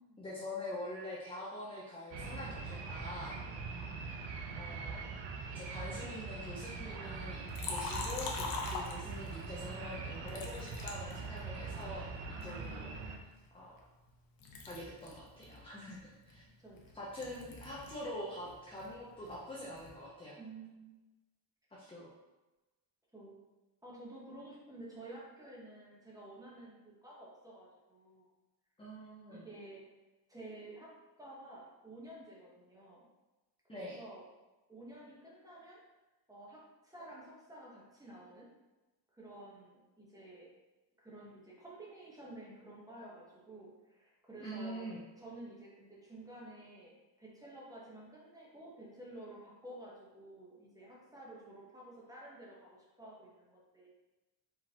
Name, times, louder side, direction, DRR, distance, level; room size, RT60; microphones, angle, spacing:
voice 1, 0.2-3.4 4.6-5.0 5.5-12.9 13.5-13.8 14.7-16.4 16.9-20.4 21.7-22.1 28.8-29.5 33.7-34.0 44.4-45.0, left 1 dB, 10° left, -6 dB, 0.6 m, -45 dB
sound 1, 2.1-13.2, right 4 dB, 80° right, 0.8 m, -43 dB
voice 2, 3.4-4.0 12.3-13.4 16.6-16.9 20.4-20.8 23.1-23.4 23.8-28.3 29.3-29.8 30.3-33.1 33.6-34.2 34.7-35.8 36.3-38.5 39.1-40.5 41.0-44.9 45.2-53.9, right 1 dB, 10° right, -5 dB, 0.9 m, -52 dB
Liquid, 7.5-9.5 10.3-11.8 12.4-14.1 14.4-18.1 18.4-20.0, left 3 dB, 50° left, 0.8 m, -43 dB
4.8 x 3.8 x 2.8 m, 1.1 s
cardioid pair, 160°, 45 cm